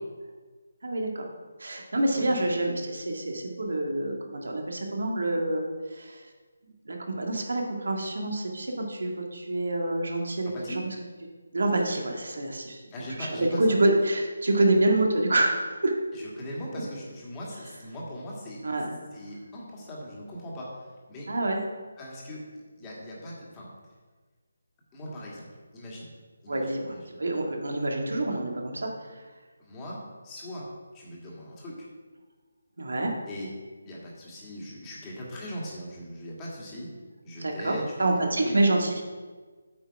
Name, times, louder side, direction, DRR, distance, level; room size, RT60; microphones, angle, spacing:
voice 1, 0.8-1.3 1.6-5.6 5.9-6.2 6.6-10.9 11.5-12.8 13.2-15.9 18.6-19.0 21.3-21.6 26.5-28.9 32.8-33.1 37.4-37.7 38.0-39.0, right 2 dB, 80° right, 1 dB, 1.9 m, -27 dB
voice 2, 1.9-2.7 10.4-10.8 12.9-13.6 16.1-18.6 19.1-21.3 22.0-23.7 24.9-25.5 25.7-26.1 26.4-27.1 29.6-30.7 30.9-31.9 33.2-33.5 33.8-36.9 37.2-38.9, equal, 15° left, -5 dB, 1.9 m, -40 dB
8.5 x 6.4 x 4.8 m, 1.4 s
hypercardioid pair, 170°, 0 cm